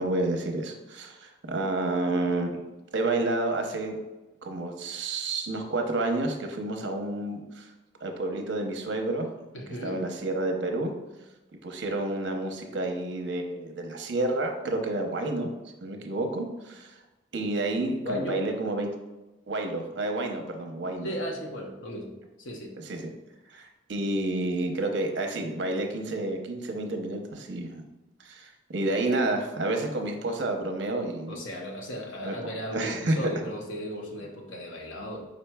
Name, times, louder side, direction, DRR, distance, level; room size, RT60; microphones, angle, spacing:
voice 1, 0.0-2.6 2.9-4.0 4.4-7.7 8.0-9.3 9.8-10.9 11.6-15.5 15.8-16.9 17.3-18.9 19.5-21.1 22.9-23.1 23.5-27.8 28.2-31.4 32.2-33.1, right 2 dB, 70° right, 4 dB, 0.7 m, -30 dB
voice 2, 9.5-10.0 18.0-18.5 21.0-22.7 31.3-35.3, equal, 90° left, 1 dB, 0.9 m, -36 dB
5.0 x 4.4 x 2.2 m, 1.1 s
head